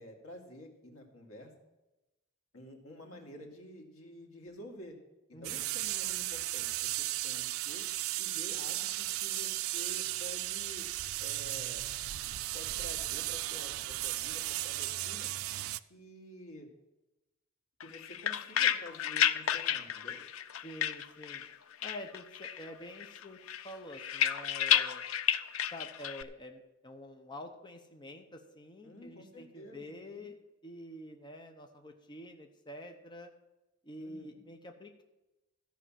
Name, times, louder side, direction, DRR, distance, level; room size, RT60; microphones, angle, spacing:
voice 1, 0.0-1.5 2.5-5.0 5.3-7.8 8.2-10.9 11.2-11.9 12.5-15.3 15.9-16.7 17.8-20.2 28.8-30.3 34.0-34.4, left 1 dB, 90° left, 2 dB, 2.2 m, -50 dB
voice 2, 5.3-5.8 20.6-21.5 21.8-23.4 23.6-25.0 25.7-30.4 30.6-33.3 33.8-35.0, left 1 dB, 20° left, 4 dB, 0.9 m, -47 dB
sound 1, 5.4-15.8, right 16 dB, 75° right, 0.4 m, -35 dB
sound 2, 17.8-21.5 21.8-22.7 23.0-26.2, left 10 dB, 75° left, 0.5 m, -31 dB
13.5 x 5.7 x 7.5 m, 1.0 s
head